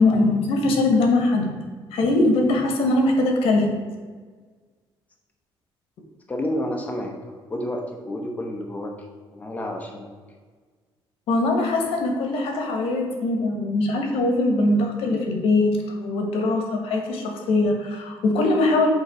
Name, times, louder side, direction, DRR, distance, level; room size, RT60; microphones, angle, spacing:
voice 1, 0.0-1.5 1.9-3.8 11.3-18.9, left 2 dB, 80° left, 3 dB, 1.2 m, -21 dB
voice 2, 6.3-8.9 9.3-10.1, left 1 dB, 15° left, 1 dB, 0.8 m, -30 dB
8.1 x 3.0 x 4.8 m, 1.5 s
cardioid pair, 150°, 10 cm